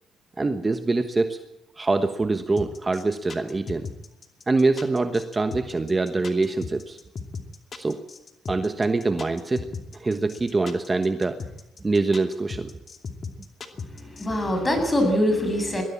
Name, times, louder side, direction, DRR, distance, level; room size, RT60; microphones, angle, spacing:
voice 1, 0.4-1.4 1.8-3.9 4.5-7.0 7.7-8.0 8.5-9.7 9.9-11.4 11.8-12.7, right 3 dB, 25° right, 8 dB, 1.3 m, -24 dB
sound 1, 2.6-14.3, left 5 dB, 45° left, 2.5 m, -36 dB
voice 2, 13.9-15.8, left 1 dB, 20° left, 6 dB, 7.5 m, -23 dB
21.5 x 15.5 x 8.7 m, 0.88 s
cardioid pair, 90°, 0 cm